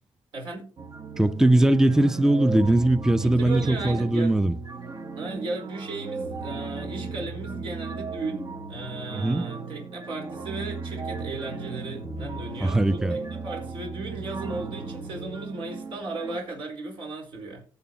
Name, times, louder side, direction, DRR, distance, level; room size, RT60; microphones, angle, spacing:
voice 1, 0.3-0.7 3.2-4.4 5.2-17.6, right 3 dB, 75° right, 4.6 m, -36 dB
sound 1, 0.8-16.4, right 4 dB, 50° right, 1.1 m, -36 dB
voice 2, 1.2-4.6 9.1-9.4 12.0-13.2, right 1 dB, 5° right, 0.5 m, -21 dB
18.0 x 6.9 x 2.9 m
cardioid pair, 95°, 9 cm